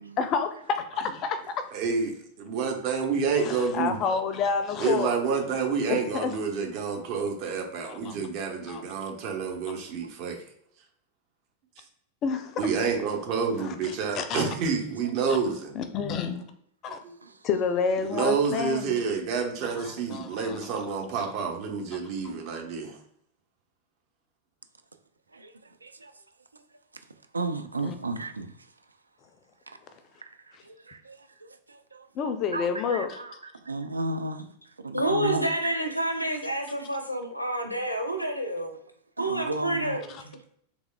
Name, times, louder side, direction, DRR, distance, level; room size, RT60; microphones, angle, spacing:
voice 1, 0.2-0.5 1.0-1.4 3.3-5.1 5.9-6.4 7.8-8.3 8.7-8.8 12.2-12.6 13.6-13.7 14.2-14.5 15.3-15.4 15.7-16.4 16.8-17.0 17.4-19.0 19.8-20.7 27.8-27.9 32.1-33.1, left 6 dB, 35° left, 0.4 m, -29 dB
voice 2, 1.7-2.1 2.4-3.9 4.8-9.5 10.1-10.4 12.6-15.7 17.0-17.1 18.0-23.0, right 5 dB, 45° right, 0.8 m, -28 dB
voice 3, 25.3-26.2 26.5-26.7 26.9-29.0 29.7-29.8 30.2-36.1 39.2-40.0, right 2 dB, 80° right, 0.3 m, -35 dB
voice 4, 34.9-38.7 39.2-40.0, right 1 dB, 90° left, 0.5 m, -28 dB
3.5 x 3.0 x 2.2 m
figure-of-eight pair, 90°, 0 cm